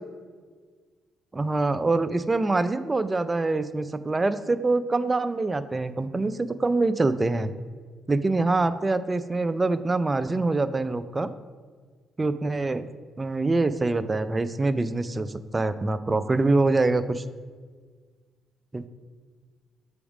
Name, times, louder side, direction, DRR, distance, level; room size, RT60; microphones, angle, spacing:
voice 1, 1.3-7.5 8.1-11.3 12.2-12.8 13.2-15.3 15.5-17.2 18.7-18.9, right 3 dB, 20° right, 12 dB, 0.3 m, -25 dB
7.1 x 3.5 x 4.8 m, 1.6 s
cardioid pair, 90°, 0 cm